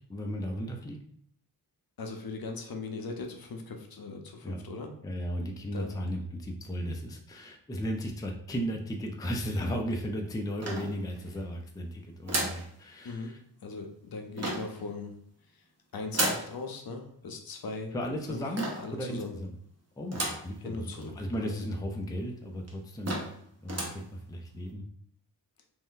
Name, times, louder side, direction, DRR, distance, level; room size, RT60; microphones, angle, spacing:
voice 1, 0.1-1.0 4.4-4.6 5.0-13.4 17.9-19.5 20.0-23.2 23.6-24.8, equal, 10° left, 2 dB, 0.4 m, -35 dB
voice 2, 2.0-4.9 5.7-5.9 13.0-13.3 13.6-15.1 15.9-17.9 18.3-18.4 18.8-19.3 20.6-21.1 21.4-21.7, left 3 dB, 55° left, 3 dB, 0.6 m, -39 dB
sound 1, 10.6-11.4 12.3-12.7 14.4-14.8 16.1-16.5 18.6-18.9 20.1-20.5 21.0-21.1 21.3-21.4 22.2-22.3 22.7-22.8 23.0-23.4 23.7-24.0, right 1 dB, 35° right, 0.9 m, -32 dB
2.6 x 2.1 x 3.7 m, 0.63 s
cardioid pair, 55°, 43 cm